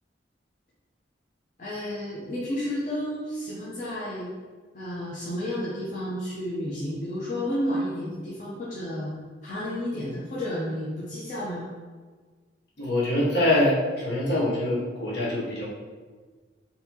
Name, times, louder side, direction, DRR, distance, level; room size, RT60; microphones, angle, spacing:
voice 1, 1.6-4.3 4.7-9.1 9.4-11.7, equal, 40° left, -8 dB, 0.6 m, -31 dB
voice 2, 12.8-15.7, left 1 dB, 65° left, -6 dB, 1.0 m, -24 dB
4.0 x 2.7 x 2.8 m, 1.4 s
head